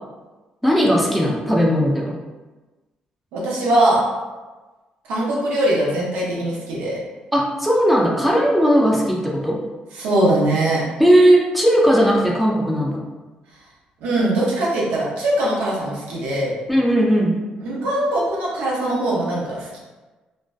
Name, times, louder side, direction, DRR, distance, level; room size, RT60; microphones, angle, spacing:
voice 1, 0.6-2.2 7.3-9.6 11.0-13.0 16.7-17.4, equal, ahead, -3 dB, 0.5 m, -17 dB
voice 2, 3.3-4.0 5.0-7.0 9.9-10.8 14.0-16.5 17.6-19.8, right 1 dB, 90° right, -5 dB, 0.7 m, -21 dB
2.5 x 2.1 x 2.3 m, 1.2 s
cardioid pair, 75°, 3 cm